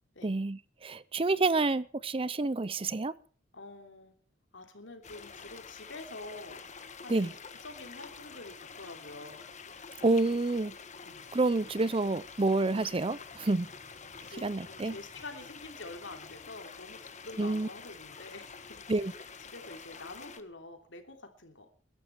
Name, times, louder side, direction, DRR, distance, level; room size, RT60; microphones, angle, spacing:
voice 1, 0.2-3.1 7.1-7.3 10.0-10.7 11.3-13.7 14.4-14.9 17.4-17.7 18.9-19.1, right 3 dB, 30° right, 0.6 m, -28 dB
voice 2, 3.5-4.1 4.5-6.6 7.0-7.3 7.6-9.4 11.0-11.3 13.5-13.6 14.2-19.1 19.4-21.7, left 2 dB, 75° left, 3.1 m, -47 dB
sound 1, 5.0-20.4, left 5 dB, 40° left, 1.4 m, -48 dB
21.5 x 11.5 x 4.6 m
head